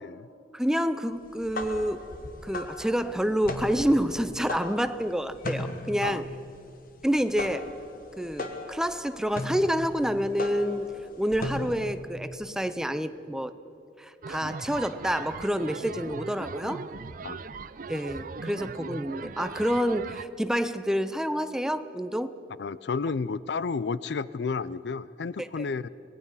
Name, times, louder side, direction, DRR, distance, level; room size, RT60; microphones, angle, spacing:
voice 1, 0.5-2.0 2.4-6.2 7.0-7.8 8.2-10.9 11.2-13.5 14.0-16.8 17.9-22.3 25.4-25.7, equal, 5° right, 11 dB, 0.6 m, -28 dB
sound 1, 1.3-12.0, left 2 dB, 55° left, 1.4 m, -37 dB
sound 2, 14.2-20.3, right 4 dB, 50° right, 0.6 m, -39 dB
voice 2, 22.6-25.9, left 4 dB, 70° left, 18 dB, 0.5 m, -31 dB
25.0 x 18.5 x 5.6 m, 2.7 s
head